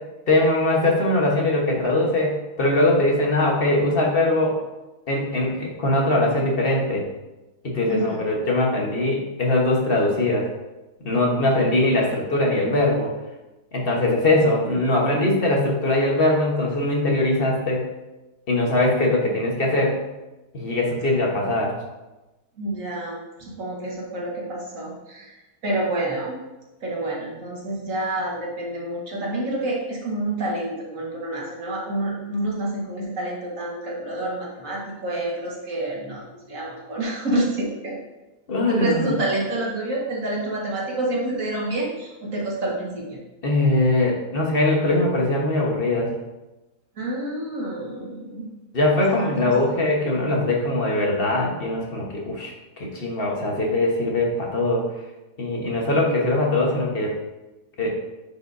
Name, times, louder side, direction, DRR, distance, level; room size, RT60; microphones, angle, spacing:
voice 1, 0.3-4.6 5.1-7.1 7.6-10.5 11.0-13.1 13.7-17.8 18.5-20.0 20.5-21.8 38.5-39.1 43.4-46.1 48.7-54.8 55.4-57.1 57.8-57.9, left 2 dB, 40° left, -2 dB, 1.3 m, -21 dB
voice 2, 22.6-25.4 25.6-26.4 26.8-38.0 38.6-43.2 47.0-48.5 49.1-49.8, right 1 dB, 55° right, -4 dB, 2.0 m, -28 dB
10.0 x 5.0 x 2.7 m, 1.1 s
omnidirectional pair, 1.7 m